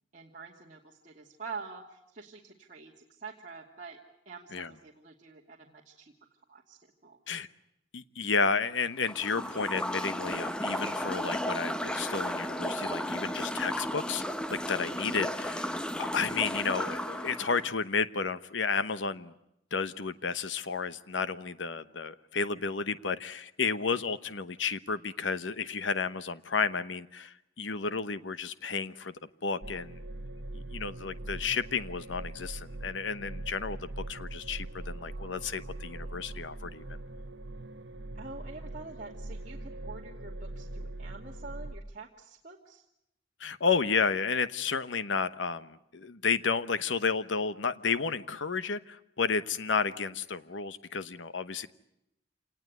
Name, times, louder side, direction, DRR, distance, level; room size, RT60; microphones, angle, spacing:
voice 1, 0.1-4.0 4.3-6.1 6.5-7.2 38.1-42.8, right 4 dB, 45° right, -3 dB, 2.4 m, -46 dB
voice 2, 7.9-14.2 14.5-19.3 19.7-29.1 29.4-30.0 30.5-36.8 43.4-51.7, left 5 dB, 85° left, 13 dB, 1.0 m, -32 dB
sound 1, 9.0-17.7, equal, 5° left, 1.0 m, -34 dB
sound 2, 29.6-41.7, right 2 dB, 75° right, 1.2 m, -42 dB
27.0 x 19.0 x 9.4 m, 0.82 s
head